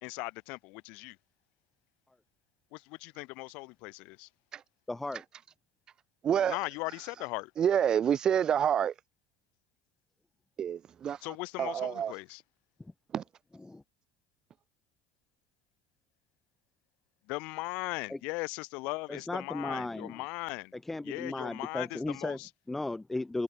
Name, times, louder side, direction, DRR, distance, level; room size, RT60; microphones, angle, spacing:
voice 1, 0.0-1.2 2.7-4.3 6.5-7.5 11.2-12.4 17.3-20.7 21.0-22.5, left 26 dB, 65° left, 1.3 m, -38 dB
voice 2, 4.9-5.2 13.6-13.8 18.1-18.2 19.1-20.2 20.7-23.4, left 2 dB, 10° left, 0.6 m, -36 dB
voice 3, 6.2-6.6 7.6-8.9 10.6-11.2 11.6-12.1 13.1-13.2, right 9 dB, 40° right, 0.4 m, -27 dB
figure-of-eight pair, 65°, 2 cm